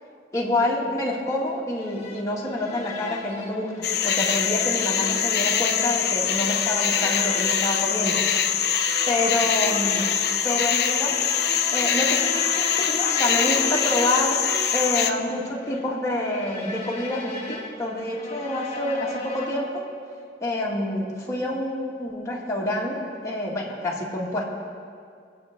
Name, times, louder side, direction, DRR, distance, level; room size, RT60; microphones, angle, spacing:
voice 1, 0.3-3.7 4.0-8.2 9.1-10.1 10.4-11.3 11.7-14.4 14.7-19.8 20.4-24.4, left 1 dB, 20° left, -5 dB, 2.3 m, -27 dB
sound 1, 1.8-19.8, left 3 dB, 40° left, 2.0 m, -36 dB
sound 2, 3.8-15.1, left 8 dB, 60° left, 0.7 m, -23 dB
24.5 x 8.3 x 3.8 m, 2.3 s
head